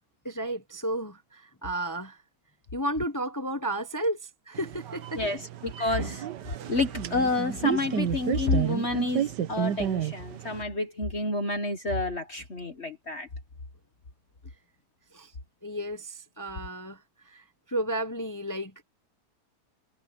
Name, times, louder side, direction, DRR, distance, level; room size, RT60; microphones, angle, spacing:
voice 1, 0.2-2.2 2.7-5.4 5.8-6.3 15.1-15.3 15.6-18.8, right 1 dB, 15° left, 0.6 m, -33 dB
sound 1, 4.5-10.6, right 9 dB, 85° right, 1.6 m, -31 dB
voice 2, 5.6-6.2 6.7-13.3, left 2 dB, 40° left, 1.9 m, -29 dB
omnidirectional pair, 1.8 m